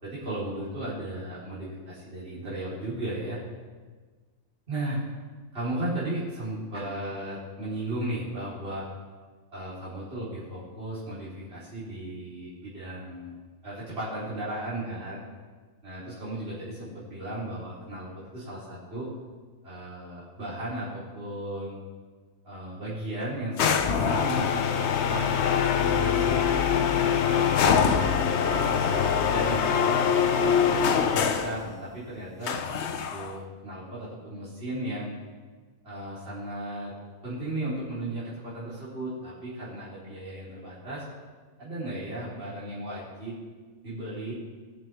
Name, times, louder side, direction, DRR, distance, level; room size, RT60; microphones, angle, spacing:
voice 1, 0.0-3.4 4.7-5.0 5.5-8.9 9.5-13.4 13.6-15.2 15.8-19.1 19.6-21.8 22.4-25.4 25.8-26.4 26.8-28.0 28.5-30.0 30.3-32.6 33.1-35.2 35.8-36.9 37.2-41.0 41.6-43.3 43.8-44.3, right 1 dB, 45° right, -10 dB, 4.2 m, -35 dB
sound 1, 23.6-31.6 32.5-33.4, left 7 dB, 60° left, 0.9 m, -24 dB
20.0 x 7.8 x 3.5 m, 1.4 s
omnidirectional pair, 1.5 m